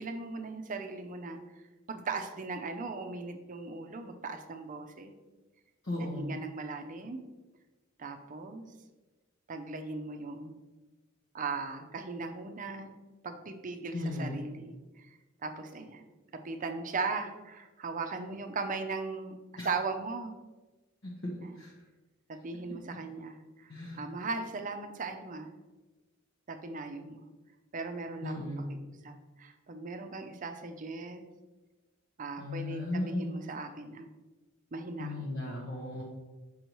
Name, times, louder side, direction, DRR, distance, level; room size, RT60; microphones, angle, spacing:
voice 1, 0.0-1.4 1.9-5.1 6.0-7.2 8.0-8.6 9.5-10.6 11.3-13.0 13.2-15.1 15.4-16.0 16.4-19.3 19.6-20.3 21.4-21.6 22.3-25.5 26.5-27.2 27.7-31.2 32.2-34.1 34.7-35.3, right 4 dB, 40° right, 7 dB, 0.5 m, -38 dB
voice 2, 5.8-6.3 13.9-14.4 19.6-19.7 21.0-21.7 22.7-22.8 23.7-24.0 28.2-28.7 32.4-33.3 35.0-36.0, left 1 dB, 60° left, -3 dB, 1.0 m, -36 dB
6.6 x 5.4 x 3.0 m, 1.2 s
head